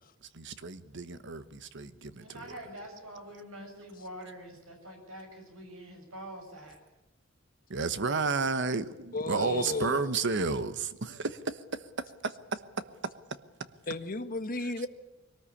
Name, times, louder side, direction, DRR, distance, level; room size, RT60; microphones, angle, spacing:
voice 1, 0.2-2.6 7.7-13.7, right 4 dB, 60° right, 1.2 m, -33 dB
voice 2, 2.2-6.8, equal, 80° right, 7.0 m, -45 dB
voice 3, 9.1-10.3 13.9-14.9, left 2 dB, 45° left, 1.5 m, -34 dB
22.0 x 19.0 x 8.5 m
head